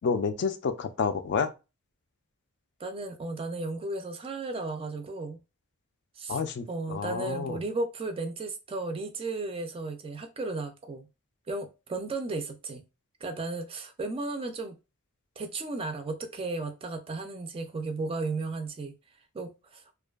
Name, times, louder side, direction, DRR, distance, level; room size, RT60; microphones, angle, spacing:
voice 1, 0.0-1.5 6.3-7.6, left 5 dB, 50° left, 0.3 m, -29 dB
voice 2, 2.8-5.4 6.2-6.4 6.7-11.1 11.5-12.8 13.2-14.8 15.4-18.9 19.3-19.8, right 3 dB, 25° right, 0.3 m, -34 dB
2.5 x 2.2 x 2.2 m
head